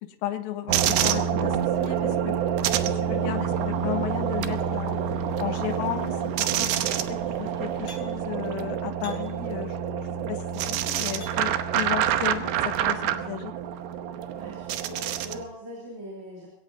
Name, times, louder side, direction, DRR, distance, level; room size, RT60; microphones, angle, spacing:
voice 1, 0.0-2.4 2.9-5.0 5.4-6.8 7.1-13.5, left 12 dB, 70° left, 6 dB, 2.7 m, -34 dB
sound 1, 0.7-15.4, right 9 dB, 80° right, 3.0 m, -27 dB
sound 2, 2.7-8.2, left 2 dB, 25° left, 7.6 m, -46 dB
sound 3, 6.7-7.2 7.9-8.3 9.0-9.5 10.3-11.7 12.3-12.4, equal, 45° left, 7.2 m, -48 dB
voice 2, 14.3-16.5, equal, 50° right, -3 dB, 4.2 m, -41 dB
23.0 x 17.5 x 2.8 m, 0.88 s
omnidirectional pair, 4.7 m